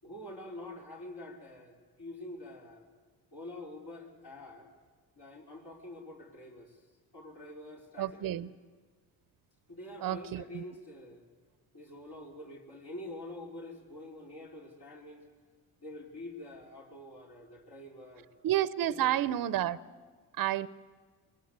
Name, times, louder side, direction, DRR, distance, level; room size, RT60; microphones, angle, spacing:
voice 1, 0.0-2.9 3.3-4.7 5.2-6.8 7.1-8.5 9.7-11.3 11.7-15.3 15.8-18.3 18.8-19.4, left 1 dB, 60° left, -3 dB, 4.4 m, -46 dB
voice 2, 8.0-8.5 10.0-10.6 18.4-19.8 20.4-20.7, right 12 dB, 55° right, 18 dB, 0.7 m, -30 dB
22.0 x 19.0 x 8.1 m, 1.5 s
supercardioid pair, 65°, 41 cm